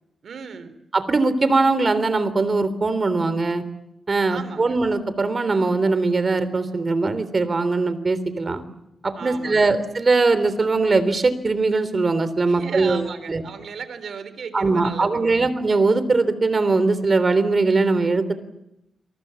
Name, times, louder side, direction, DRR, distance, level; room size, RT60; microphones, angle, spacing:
voice 1, 0.2-0.8 4.3-4.8 9.2-9.7 12.5-15.4, right 6 dB, 70° right, 12 dB, 3.6 m, -36 dB
voice 2, 0.9-3.6 4.1-8.6 9.0-13.4 14.5-18.3, right 3 dB, 35° right, 13 dB, 3.5 m, -21 dB
29.0 x 24.0 x 7.2 m, 0.86 s
cardioid pair, 95°, 0 cm